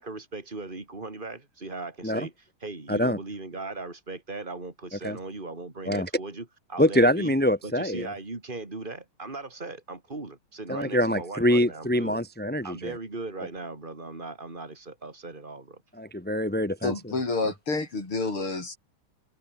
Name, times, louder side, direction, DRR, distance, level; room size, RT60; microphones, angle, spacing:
voice 1, 0.0-7.4 7.6-12.2 12.6-15.8, right 3 dB, 20° right, 3.9 m, -38 dB
voice 2, 6.8-8.1 10.7-12.9 16.0-16.9, left 1 dB, 5° left, 2.4 m, -24 dB
voice 3, 16.8-18.8, left 3 dB, 90° left, 7.1 m, -29 dB
omnidirectional pair, 2.3 m